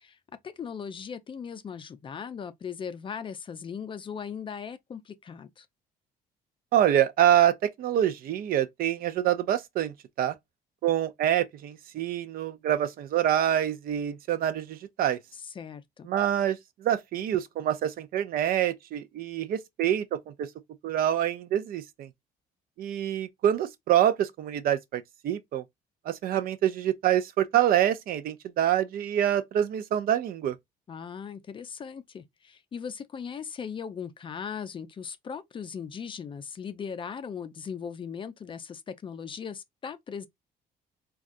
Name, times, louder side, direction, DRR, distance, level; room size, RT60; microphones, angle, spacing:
voice 1, 0.4-5.7 15.4-16.1 30.9-40.3, left 7 dB, 30° left, 0.4 m, -38 dB
voice 2, 6.7-10.4 10.8-15.2 16.1-20.5 20.8-22.1 22.8-25.6 26.1-30.6, right 11 dB, 60° right, 0.5 m, -26 dB
3.6 x 2.3 x 2.5 m
cardioid pair, 110°, 17 cm